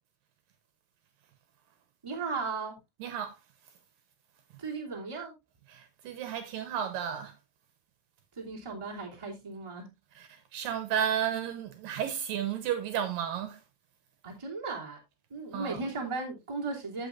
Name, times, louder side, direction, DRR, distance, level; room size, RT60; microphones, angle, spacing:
voice 1, 2.0-2.8 4.6-5.3 8.3-9.9 14.2-15.0 15.3-17.1, right 3 dB, 10° right, 2.2 m, -36 dB
voice 2, 3.0-3.3 5.7-7.3 10.2-13.6 15.5-15.8, right 9 dB, 75° right, 2.5 m, -33 dB
15.5 x 5.9 x 2.5 m
omnidirectional pair, 4.4 m